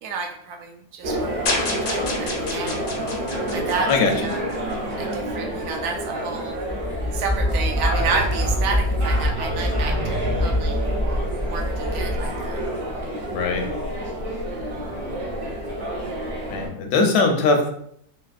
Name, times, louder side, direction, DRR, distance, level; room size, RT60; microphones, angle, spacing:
voice 1, 0.0-2.7 3.5-4.4 5.0-6.6 7.1-10.8 11.5-12.6, right 4 dB, 80° right, 3 dB, 1.1 m, -30 dB
sound 1, 1.0-16.7, equal, 45° right, 0.8 m, -29 dB
sound 2, 1.5-4.7, left 2 dB, 60° left, 0.5 m, -29 dB
sound 3, 6.6-13.0, equal, 20° right, 0.5 m, -25 dB
voice 2, 13.3-13.6 16.5-17.7, left 3 dB, 80° left, 3 dB, 1.1 m, -20 dB
3.3 x 2.8 x 2.4 m, 0.67 s
omnidirectional pair, 1.6 m